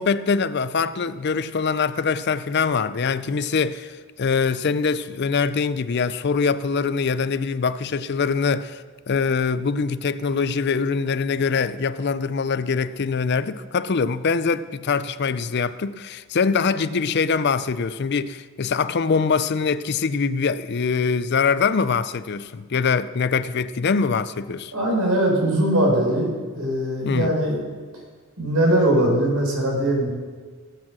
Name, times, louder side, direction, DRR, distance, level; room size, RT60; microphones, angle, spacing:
voice 1, 0.0-24.7 27.0-27.3, left 5 dB, 50° left, 0.5 m, -23 dB
voice 2, 24.7-27.6 28.4-30.1, right 1 dB, 85° right, 4.6 m, -21 dB
17.5 x 8.8 x 6.2 m
head